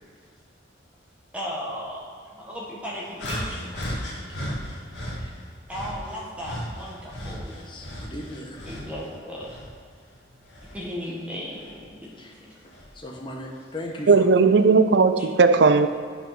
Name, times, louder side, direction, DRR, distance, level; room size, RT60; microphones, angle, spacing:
voice 1, 1.3-2.0 2.4-3.4 5.7-7.5 8.6-9.5 10.7-11.7 15.2-15.3, equal, 5° right, 1.7 m, -35 dB
sound 1, 3.2-5.2 5.7-9.0 9.4-10.8 11.6-11.8 12.7-12.9, equal, 70° left, 2.1 m, -35 dB
voice 2, 3.3-4.4 5.2-5.3 7.5-8.7 12.2-12.3 12.6-14.3, left 1 dB, 25° left, 1.1 m, -38 dB
voice 3, 14.1-15.9, right 4 dB, 65° right, 0.4 m, -17 dB
8.5 x 5.7 x 6.1 m
head